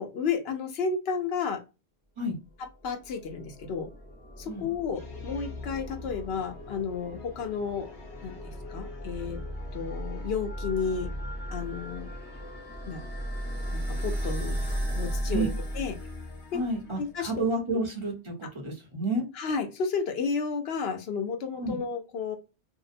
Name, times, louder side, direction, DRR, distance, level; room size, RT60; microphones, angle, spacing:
voice 1, 0.0-1.6 2.8-3.9 4.4-7.9 8.2-9.4 9.7-11.1 11.5-12.1 12.9-13.0 13.7-14.6 15.0-15.5 15.7-15.9 16.5-16.6 17.0-17.5 19.4-22.4, left 5 dB, 70° left, 5 dB, 0.9 m, -32 dB
sound 1, 2.6-16.8, equal, 10° left, 0.7 m, -36 dB
sound 2, 4.9-17.5, left 3 dB, 85° left, 1.2 m, -47 dB
voice 2, 16.5-19.2 21.6-21.8, right 2 dB, 30° right, 0 dB, 0.8 m, -30 dB
2.8 x 2.0 x 2.5 m, 0.28 s
omnidirectional pair, 1.1 m